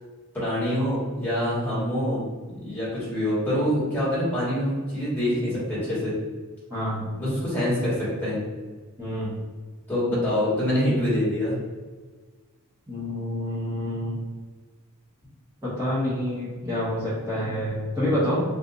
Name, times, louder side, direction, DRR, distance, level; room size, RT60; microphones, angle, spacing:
voice 1, 0.3-2.2 2.6-6.1 7.2-8.4 9.9-11.6 17.4-17.6, left 1 dB, 10° left, -10 dB, 1.4 m, -25 dB
voice 2, 6.7-7.1 9.0-9.4 12.9-14.2 15.6-18.4, equal, 15° right, -13 dB, 1.0 m, -27 dB
3.6 x 2.5 x 2.7 m, 1.4 s
head